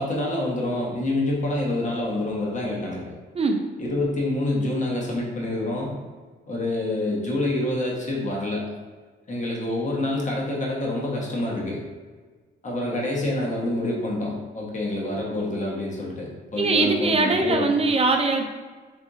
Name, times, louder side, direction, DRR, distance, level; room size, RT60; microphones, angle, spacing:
voice 1, 0.0-3.0 3.8-5.9 6.5-8.6 9.3-11.8 12.6-17.7, left 1 dB, 40° left, -3 dB, 1.2 m, -27 dB
voice 2, 16.6-18.5, right 3 dB, 30° right, 4 dB, 0.5 m, -21 dB
4.4 x 3.4 x 2.6 m, 1.4 s
cardioid pair, 90°, 20 cm